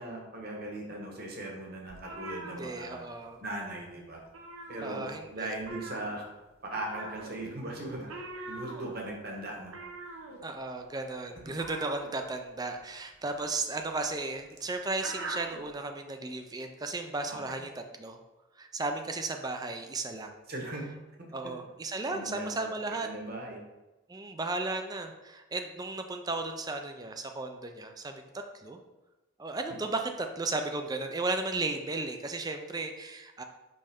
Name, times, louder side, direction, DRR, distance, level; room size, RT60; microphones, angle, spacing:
voice 1, 0.0-3.1 3.4-4.2 4.7-6.2 6.6-8.1 8.5-9.7 11.5-11.6 17.3-17.6 20.5-20.9 22.1-22.7 23.0-23.6, right 1 dB, 45° right, 0 dB, 1.2 m, -39 dB
sound 1, 1.9-3.4 3.6-3.9 4.2-5.3 5.6-15.7, right 2 dB, 75° right, 0.8 m, -44 dB
voice 2, 2.4-3.4 4.8-5.5 10.4-17.7 18.0-18.2 18.6-20.4 21.3-23.1 24.1-28.2 28.6-28.8 29.4-33.4, right 3 dB, 20° right, 5 dB, 0.4 m, -35 dB
5.4 x 5.2 x 3.5 m, 1.1 s
head